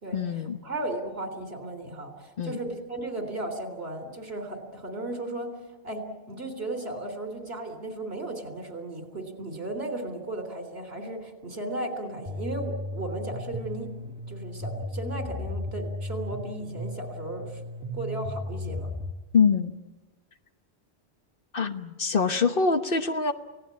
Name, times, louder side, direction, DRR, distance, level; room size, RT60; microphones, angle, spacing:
voice 1, 0.1-0.6 2.4-2.6 19.3-19.7 21.5-23.3, left 5 dB, 55° left, 8 dB, 1.3 m, -24 dB
voice 2, 0.6-5.5 5.8-17.5 17.9-18.9, right 2 dB, 70° right, 6 dB, 3.8 m, -35 dB
sound 1, 12.3-19.1, left 1 dB, 10° right, 2.1 m, -35 dB
29.0 x 17.5 x 8.5 m, 1.1 s
omnidirectional pair, 1.1 m